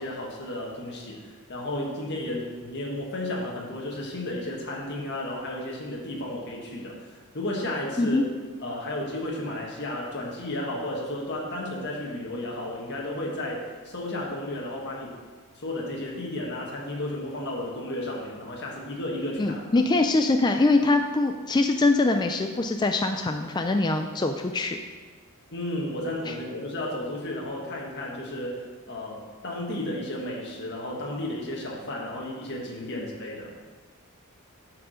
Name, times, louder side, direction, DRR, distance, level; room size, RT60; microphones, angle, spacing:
voice 1, 0.0-7.1 7.3-8.2 8.6-15.1 15.5-19.6 25.5-33.5, left 1 dB, 50° left, -3 dB, 1.4 m, -33 dB
voice 2, 19.4-24.8 26.3-26.4 32.9-33.0, left 2 dB, 20° left, 5 dB, 0.3 m, -23 dB
8.7 x 4.8 x 6.3 m, 1.4 s
head